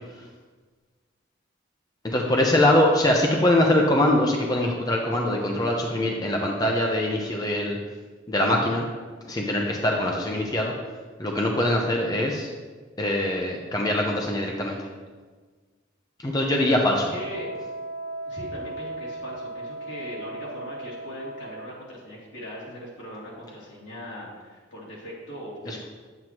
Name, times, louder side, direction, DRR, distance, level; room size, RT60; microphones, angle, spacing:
voice 1, 2.0-7.8 8.3-8.8 9.3-10.7 11.2-12.5 13.0-14.9 16.2-17.1 25.7-25.8, left 1 dB, 20° left, 0 dB, 0.6 m, -23 dB
Wind instrument woodwind instrument, 16.5-21.8, right 2 dB, 80° right, 1.2 m, -37 dB
voice 2, 16.9-17.5 18.2-25.8, equal, 80° left, -6 dB, 2.7 m, -39 dB
9.0 x 7.9 x 3.0 m, 1.4 s
head